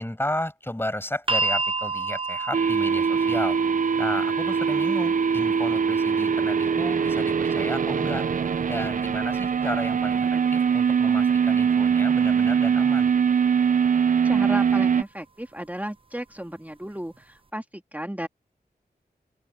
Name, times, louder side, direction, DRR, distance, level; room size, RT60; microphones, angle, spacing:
voice 1, 0.0-3.6 4.0-8.3 8.7-13.1, left 1 dB, 15° left, 5.7 m, -33 dB
sound 1, 1.3-13.4 14.4-14.5, right 3 dB, 30° right, 0.9 m, -34 dB
sound 2, 2.5-15.0, right 6 dB, 50° right, 0.4 m, -22 dB
voice 2, 14.2-18.3, equal, 10° right, 2.2 m, -34 dB
open air
cardioid pair, 50°, 17 cm